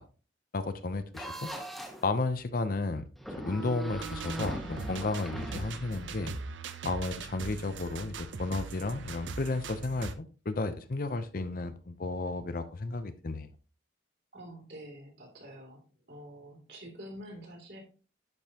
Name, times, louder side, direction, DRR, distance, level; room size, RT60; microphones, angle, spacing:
voice 1, 0.5-1.5 2.0-3.1 3.4-6.3 6.8-13.5, left 3 dB, 50° left, 11 dB, 0.6 m, -33 dB
sound 1, 1.1-2.1 3.2-6.3, right 1 dB, ahead, 1.2 m, -40 dB
sound 2, 3.9-10.1, right 4 dB, 80° right, 0.6 m, -41 dB
voice 2, 14.3-15.8 16.1-17.8, equal, 60° right, -1 dB, 2.8 m, -47 dB
10.5 x 5.3 x 2.9 m, 0.36 s
head